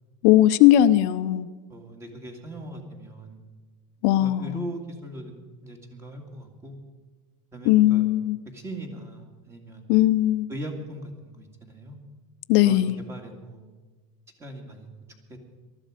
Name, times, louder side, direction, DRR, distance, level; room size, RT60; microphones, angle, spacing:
voice 1, 0.2-1.5 4.0-4.6 7.6-8.4 9.9-10.5 12.5-13.0, left 13 dB, 60° left, 11 dB, 0.6 m, -19 dB
voice 2, 1.7-3.4 4.2-6.8 7.5-8.0 8.5-9.9 10.5-12.0 12.6-13.7 14.4-14.9 15.3-15.4, right 1 dB, 15° right, 4 dB, 2.2 m, -39 dB
19.5 x 13.0 x 5.0 m, 1.3 s
cardioid pair, 155°, 17 cm